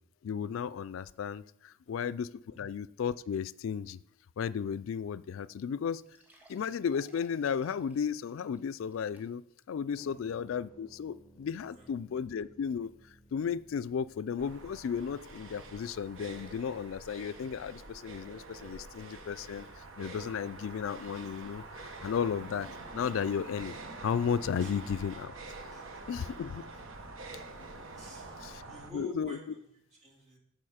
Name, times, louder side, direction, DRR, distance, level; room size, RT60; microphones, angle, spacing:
voice 1, 0.2-4.0 4.4-6.0 6.5-12.9 13.3-23.8 24.0-25.3 26.1-26.7 28.4-28.6 28.9-29.4, left 7 dB, 70° left, 17 dB, 0.3 m, -34 dB
sound 1, 5.5-5.6 6.0-9.6 10.1-10.2 10.7-10.8, equal, 10° right, 1.6 m, -63 dB
sound 2, 10.0-21.6, equal, 10° left, 1.0 m, -63 dB
sound 3, 14.4-28.9, right 3 dB, 70° right, 1.1 m, -46 dB
voice 2, 27.9-29.6 30.0-30.4, equal, 35° right, -1 dB, 2.5 m, -49 dB
8.7 x 6.1 x 5.0 m, 0.73 s
head